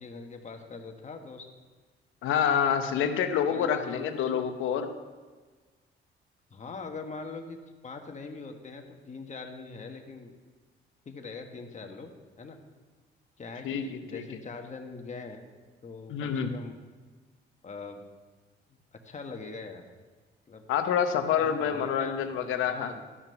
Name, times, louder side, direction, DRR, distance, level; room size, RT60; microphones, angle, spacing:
voice 1, 0.0-1.5 3.5-4.5 6.5-10.3 11.0-12.1 12.4-12.6 13.4-15.5 15.8-16.8 17.6-18.0 18.9-19.8 20.5-20.6 21.4-22.3 22.6-23.0, left 4 dB, 35° left, 4 dB, 1.4 m, -42 dB
voice 2, 2.2-4.9 13.6-14.2 16.1-16.5 20.7-22.9, left 8 dB, 85° left, 7 dB, 0.9 m, -27 dB
12.5 x 5.9 x 5.6 m, 1.4 s
cardioid pair, 90°, 20 cm